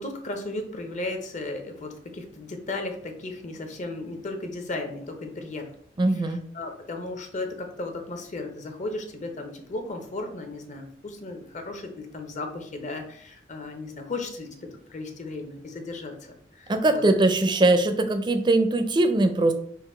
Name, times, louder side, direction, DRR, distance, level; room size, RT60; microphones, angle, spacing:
voice 1, 0.0-5.7 6.1-16.1 16.5-17.0, left 2 dB, 45° left, 4 dB, 0.7 m, -35 dB
voice 2, 6.0-6.4 16.7-19.5, right 2 dB, 25° right, 7 dB, 0.4 m, -21 dB
3.9 x 2.6 x 4.3 m, 0.63 s
head